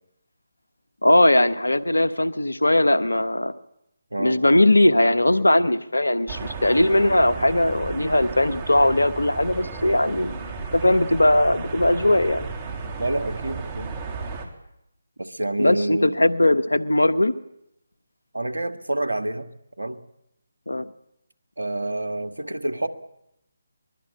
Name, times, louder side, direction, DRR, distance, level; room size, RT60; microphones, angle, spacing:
voice 1, 1.0-3.5 4.2-12.5 15.6-17.3 20.7-20.8, left 1 dB, 85° left, 13 dB, 1.2 m, -19 dB
voice 2, 4.1-4.6 13.0-13.9 15.2-16.2 18.3-19.5 19.8-20.0 21.6-22.9, right 1 dB, 85° right, 7 dB, 2.1 m, -28 dB
sound 1, 6.3-14.5, right 4 dB, 25° right, 3.5 m, -34 dB
23.5 x 21.5 x 8.8 m, 0.81 s
figure-of-eight pair, 150°, 0 cm